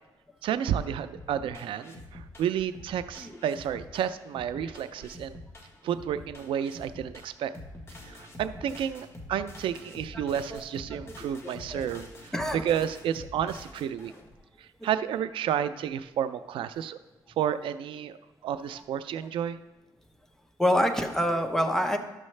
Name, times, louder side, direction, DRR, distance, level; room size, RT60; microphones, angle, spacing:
voice 1, 0.4-5.4 5.8-7.5 8.0-14.1 14.6-17.0 17.4-18.2 18.4-19.6, right 9 dB, 90° right, 12 dB, 0.4 m, -31 dB
sound 1, 1.1-14.3, left 1 dB, 30° left, 1.2 m, -46 dB
voice 2, 11.4-11.9 12.3-12.6 14.8-14.9 20.6-22.0, equal, 5° left, 5 dB, 0.7 m, -27 dB
11.5 x 6.4 x 3.2 m, 1.1 s
cardioid pair, 120°, 9 cm